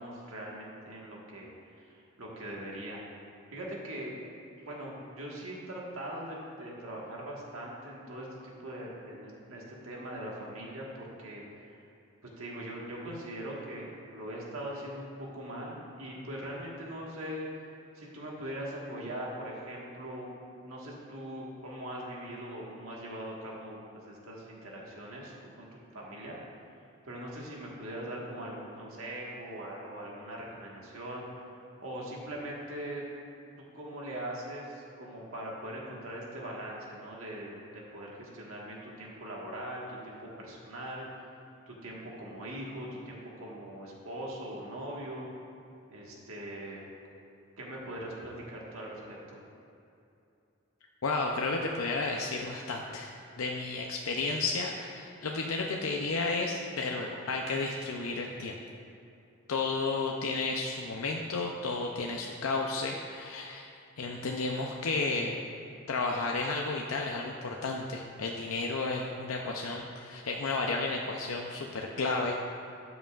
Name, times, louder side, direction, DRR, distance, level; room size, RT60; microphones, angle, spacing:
voice 1, 0.0-1.5 1.8-3.0 3.5-4.1 4.7-11.8 12.4-17.4 18.0-20.3 20.6-25.7 25.9-26.4 27.0-31.4 31.8-33.0 33.7-41.1 41.7-45.3 45.9-46.9 47.6-49.4, right 1 dB, 85° right, -3 dB, 1.6 m, -41 dB
voice 2, 51.0-53.1 53.4-58.5 59.5-63.7 64.0-65.4 65.9-72.4, left 3 dB, 85° left, 0 dB, 0.6 m, -32 dB
12.5 x 7.9 x 2.4 m, 2.7 s
head